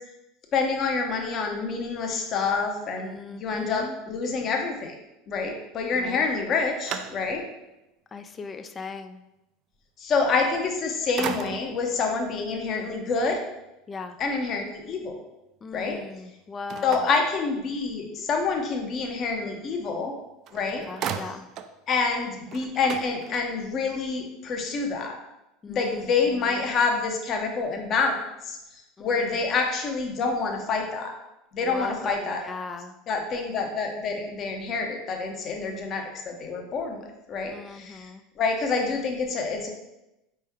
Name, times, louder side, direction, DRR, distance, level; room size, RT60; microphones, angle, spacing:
voice 1, 0.5-4.9 5.3-7.4 10.0-13.4 14.2-15.2 15.7-16.0 16.8-20.1 20.5-20.8 21.9-25.2 25.7-28.2 28.4-28.6 29.0-31.1 31.5-32.4 33.1-38.1 38.4-39.7, left 4 dB, 45° left, 2 dB, 0.9 m, -27 dB
voice 2, 3.0-3.9 5.9-6.3 8.1-9.2 13.9-14.2 15.6-17.0 20.7-21.5 25.6-26.7 29.0-29.3 31.6-32.9 37.5-38.2, left 4 dB, 30° left, 8 dB, 0.4 m, -39 dB
sound 1, 6.2-7.6 8.2-8.3 10.5-10.8 11.2-11.9 16.7-18.0 20.1-20.2 20.5-21.8 22.1-22.2 22.5-23.7, right 8 dB, 50° right, 0.4 m, -36 dB
4.3 x 3.3 x 3.5 m, 0.92 s
hypercardioid pair, 80°, 0 cm